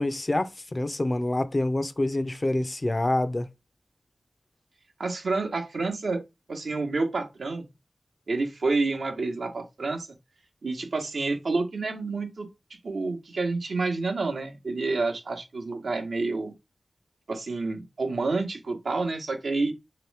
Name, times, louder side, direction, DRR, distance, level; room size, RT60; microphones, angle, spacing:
voice 1, 0.0-3.5, left 1 dB, 35° left, 0.5 m, -26 dB
voice 2, 5.0-6.2 6.5-7.6 8.3-10.1 10.6-12.5 12.8-16.5 17.3-19.7, right 3 dB, 75° right, 0.8 m, -29 dB
3.1 x 2.9 x 3.3 m
wide cardioid pair, 60°, 0 cm